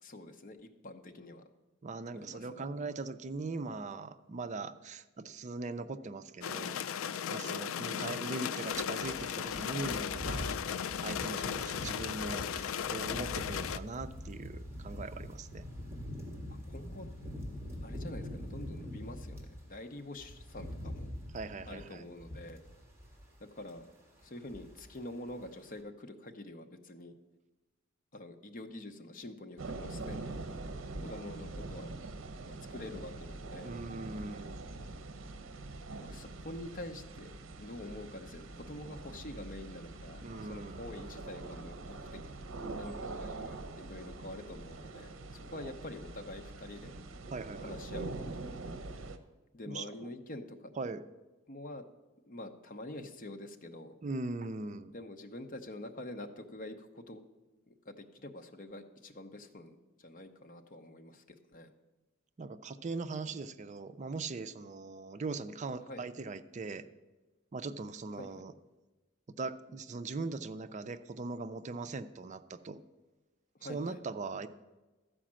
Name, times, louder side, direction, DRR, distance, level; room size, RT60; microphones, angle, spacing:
voice 1, 0.0-1.4 2.1-2.7 7.9-8.1 16.7-17.1 17.8-21.1 21.7-22.6 23.4-23.8 24.2-27.2 28.1-30.6 31.0-31.9 32.4-33.7 36.0-42.2 42.8-46.9 47.6-48.5 49.5-50.7 51.5-51.8 52.3-54.0 54.9-57.2 57.7-61.7 65.9-66.0 68.2-68.4 73.6-74.0, left 1 dB, 45° left, 6 dB, 0.8 m, -46 dB
voice 2, 1.8-6.8 7.3-10.6 11.0-15.6 21.3-22.0 33.6-34.7 40.2-40.9 45.6-45.7 47.3-47.7 49.7-49.9 50.8-51.0 54.0-54.9 62.4-66.9 67.5-68.5 69.4-72.8 73.7-74.5, right 3 dB, 35° right, 11 dB, 0.4 m, -40 dB
sound 1, 6.4-13.8, left 8 dB, 80° left, 0.4 m, -36 dB
sound 2, 8.7-19.6 20.0-23.4 23.6-23.9 24.2-25.0 25.3-25.5, equal, 15° right, 1.9 m, -44 dB
sound 3, 29.6-49.2, right 2 dB, 70° right, 0.7 m, -44 dB
12.5 x 5.0 x 7.5 m, 1.1 s
head